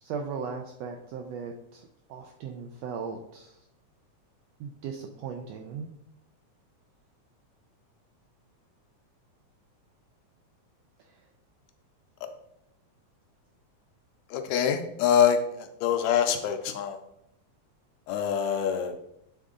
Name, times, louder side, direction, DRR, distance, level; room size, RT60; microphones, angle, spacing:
voice 1, 0.0-3.6 4.6-5.9 11.0-11.2, right 6 dB, 85° right, 3 dB, 1.5 m, -38 dB
voice 2, 14.3-15.4 15.8-17.0 18.1-18.9, left 8 dB, 80° left, 6 dB, 1.8 m, -24 dB
7.6 x 3.6 x 3.7 m, 0.79 s
omnidirectional pair, 3.4 m